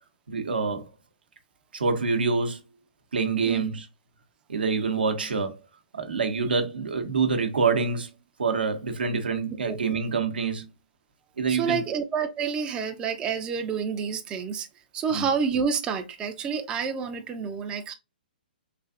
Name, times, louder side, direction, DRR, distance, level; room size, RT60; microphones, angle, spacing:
voice 1, 0.3-0.9 1.7-2.6 3.1-3.9 4.5-5.5 5.9-8.1 8.4-10.7 11.4-11.8 15.1-15.2, right 4 dB, 80° right, 0.7 m, -26 dB
voice 2, 11.5-14.7 14.9-17.9, right 6 dB, 15° right, 0.3 m, -29 dB
3.2 x 2.5 x 2.3 m
hypercardioid pair, 130°, 5 cm